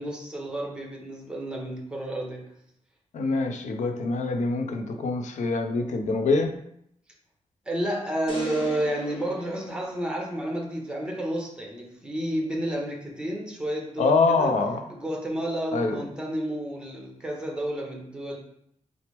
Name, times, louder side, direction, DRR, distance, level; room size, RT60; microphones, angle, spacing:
voice 1, 0.0-2.5 7.7-14.5 14.9-18.4, right 1 dB, 5° right, -1 dB, 1.0 m, -31 dB
voice 2, 3.1-6.5 14.0-14.8 15.7-16.0, left 3 dB, 75° left, 6 dB, 0.6 m, -25 dB
sound 1, 8.3-10.6, left 2 dB, 45° left, 1.0 m, -41 dB
5.8 x 2.1 x 3.4 m, 0.73 s
wide cardioid pair, 115°, 12 cm